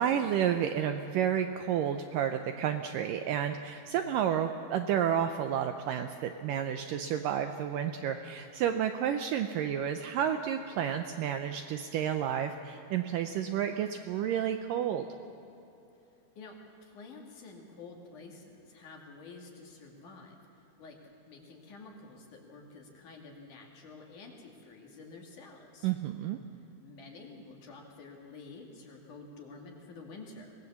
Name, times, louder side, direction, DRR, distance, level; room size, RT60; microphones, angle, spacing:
voice 1, 0.0-15.1 25.8-26.4, right 9 dB, 75° right, 7 dB, 2.0 m, -31 dB
voice 2, 16.4-20.4 20.8-21.0 21.3-25.9 26.8-30.6, left 3 dB, 55° left, 1 dB, 3.4 m, -49 dB
24.0 x 18.5 x 7.2 m, 3.0 s
omnidirectional pair, 4.5 m